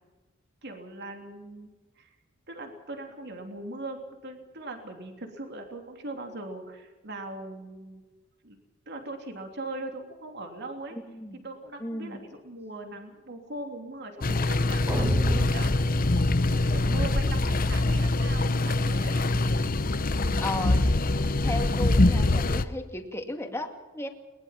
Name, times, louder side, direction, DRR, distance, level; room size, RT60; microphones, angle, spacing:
voice 1, 0.6-1.7 2.0-2.2 2.5-8.0 8.4-8.6 8.9-11.0 11.3-15.9 16.7-19.1, right 2 dB, 55° right, 4 dB, 3.1 m, -40 dB
voice 2, 10.9-11.4 11.8-12.2 20.4-20.9 21.4-24.1, left 1 dB, 15° left, 4 dB, 2.2 m, -35 dB
sound 1, 14.2-22.6, left 2 dB, 45° left, 0.9 m, -24 dB
sound 2, 14.9-17.2, right 1 dB, 20° right, 3.3 m, -32 dB
22.0 x 20.5 x 5.9 m, 1.3 s
head